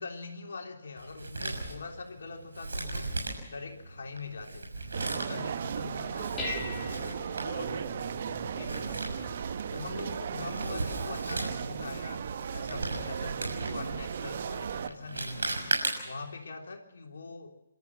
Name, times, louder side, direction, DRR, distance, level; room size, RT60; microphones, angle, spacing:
voice 1, 0.0-3.1 3.5-4.7 5.0-6.4 7.4-7.9 8.5-8.9 9.7-15.6 16.0-17.6, left 4 dB, 60° left, 2 dB, 3.5 m, -42 dB
Male speech man speaking, 1.0-16.3, right 2 dB, 65° right, 6.5 m, -38 dB
sound 1, 4.9-14.9, right 7 dB, 45° right, 1.1 m, -36 dB
Dishes pots and pans, 5.7-14.9, left 2 dB, 15° left, 3.7 m, -45 dB
voice 2, 6.0-7.2 7.6-9.3, right 4 dB, 20° right, 4 dB, 1.8 m, -46 dB
28.5 x 13.5 x 7.6 m, 1.0 s
figure-of-eight pair, 135°, 0 cm